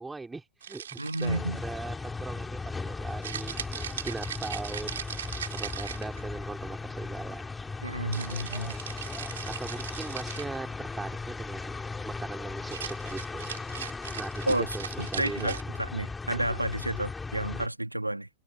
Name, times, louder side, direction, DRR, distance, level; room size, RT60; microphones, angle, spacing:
voice 1, 0.0-5.0 5.5-7.4 9.6-13.5 14.2-15.6, right 3 dB, 10° right, 5.4 m, -40 dB
sound 1, 0.6-1.6 3.2-6.4 8.1-10.6 12.6-15.6, right 9 dB, 65° right, 6.0 m, -39 dB
voice 2, 1.0-1.6 7.8-8.7 14.5-14.7 15.2-18.3, right 1 dB, 85° right, 2.2 m, -31 dB
sound 2, 1.2-17.7, left 4 dB, 10° left, 3.9 m, -37 dB
figure-of-eight pair, 90°, 0 cm